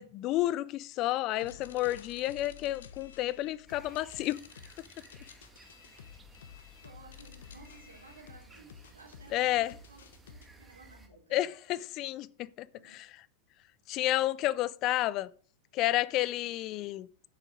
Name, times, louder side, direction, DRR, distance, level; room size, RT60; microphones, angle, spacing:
voice 1, 0.0-4.4 9.3-9.7 11.3-13.1 13.9-15.3 15.7-17.1, left 15 dB, 40° left, 0.4 m, -31 dB
sound 1, 1.4-10.5, left 8 dB, 65° left, 1.0 m, -52 dB
sound 2, 3.7-11.1, right 3 dB, 10° right, 1.6 m, -57 dB
voice 2, 6.8-11.4 12.7-13.0, right 3 dB, 80° right, 3.1 m, -56 dB
9.1 x 7.3 x 5.0 m
figure-of-eight pair, 90°, 0 cm